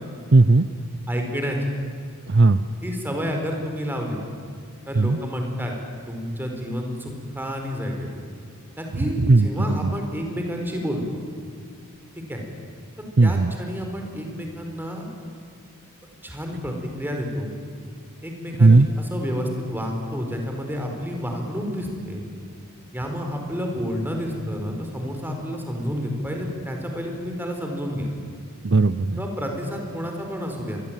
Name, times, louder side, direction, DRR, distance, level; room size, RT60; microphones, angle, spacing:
voice 1, 0.3-0.7 2.3-2.6 4.9-5.2 8.9-9.9 13.2-13.6 18.6-18.9 28.6-29.2, right 3 dB, 50° right, 13 dB, 0.6 m, -17 dB
voice 2, 1.1-1.7 2.8-4.2 4.9-5.7 6.1-8.1 8.8-11.0 12.1-12.4 13.2-15.1 16.2-17.5 18.2-22.2 22.9-28.1 29.2-30.8, equal, 10° right, 2 dB, 4.6 m, -30 dB
26.5 x 22.5 x 9.1 m, 2.3 s
head